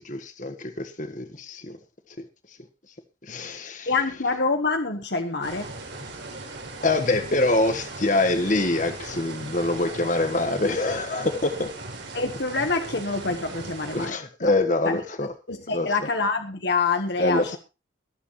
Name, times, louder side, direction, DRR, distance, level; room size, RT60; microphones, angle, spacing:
voice 1, 0.0-1.8 2.2-2.3 3.2-3.9 6.8-11.7 13.9-15.3 15.7-16.1 17.2-17.6, left 2 dB, 40° left, 8 dB, 1.5 m, -25 dB
voice 2, 3.9-5.7 12.1-14.5 14.8-15.0 15.5-17.6, left 4 dB, 55° left, 5 dB, 1.3 m, -26 dB
sound 1, 5.4-14.1, right 2 dB, 65° right, 4.5 m, -38 dB
23.5 x 8.2 x 3.1 m, 0.29 s
head